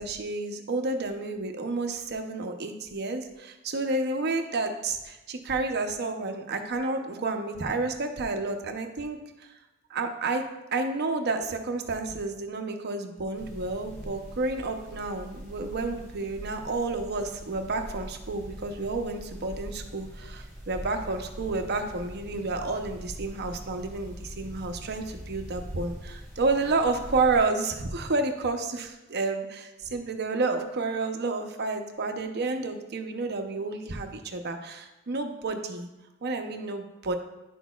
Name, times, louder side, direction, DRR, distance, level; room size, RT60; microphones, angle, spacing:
voice 1, 0.0-9.5 9.9-35.9 36.2-37.1, right 3 dB, 55° right, 5 dB, 0.7 m, -30 dB
sound 1, 13.3-27.4, equal, 10° left, 1.5 m, -43 dB
10.0 x 6.3 x 2.3 m, 1.0 s
head